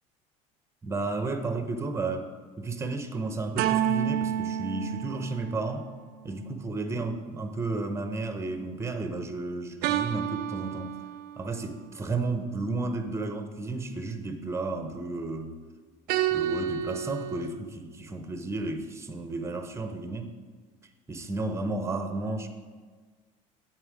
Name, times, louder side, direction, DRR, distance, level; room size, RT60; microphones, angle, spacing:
voice 1, 0.8-2.3 2.6-5.9 6.2-11.0 11.4-15.5 16.3-20.3 21.1-22.5, right 3 dB, 15° right, 7 dB, 0.8 m, -32 dB
sound 1, 3.6-6.1 9.8-11.6 16.1-17.5, right 10 dB, 65° right, 0.4 m, -30 dB
7.9 x 4.4 x 4.7 m, 1.5 s
supercardioid pair, 90°, 17 cm